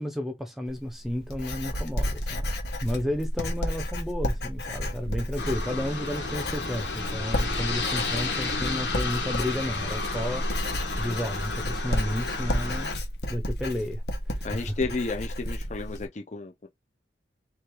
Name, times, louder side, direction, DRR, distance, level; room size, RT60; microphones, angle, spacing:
voice 1, 0.0-2.5 2.8-12.9 13.3-14.9, left 1 dB, ahead, 0.6 m, -32 dB
Writing, 0.7-16.0, equal, 65° left, 1.4 m, -32 dB
Aircraft, 5.4-12.9, left 3 dB, 80° left, 1.9 m, -32 dB
voice 2, 14.4-16.7, left 3 dB, 40° left, 0.6 m, -32 dB
3.4 x 3.2 x 4.6 m
head